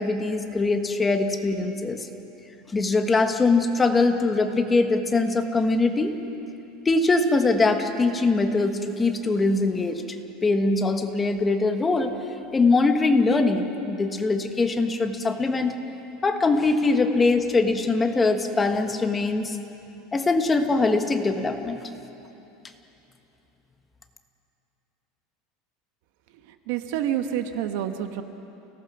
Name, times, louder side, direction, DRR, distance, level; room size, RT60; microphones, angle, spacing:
voice 1, 0.0-2.1 2.7-6.2 6.8-10.0 10.4-12.1 12.5-15.7 16.2-19.6 20.1-21.9, left 3 dB, 15° left, 5 dB, 1.3 m, -22 dB
voice 2, 26.4-28.2, right 10 dB, 65° right, 7 dB, 1.5 m, -28 dB
29.5 x 18.0 x 6.2 m, 2.9 s
supercardioid pair, 155°, 0 cm